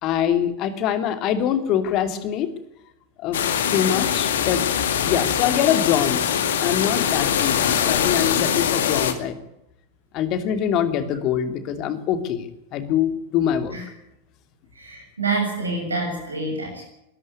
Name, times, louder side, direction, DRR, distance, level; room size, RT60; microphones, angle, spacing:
voice 1, 0.0-2.5 3.2-3.4 3.7-4.6 5.0-9.4 10.1-13.8, left 9 dB, 40° left, 10 dB, 2.8 m, -24 dB
sound 1, 3.3-9.1, left 9 dB, 60° left, 2.3 m, -22 dB
voice 2, 14.8-16.8, right 3 dB, 75° right, 1 dB, 7.4 m, -27 dB
21.5 x 13.5 x 9.5 m, 0.85 s
figure-of-eight pair, 90°, 0 cm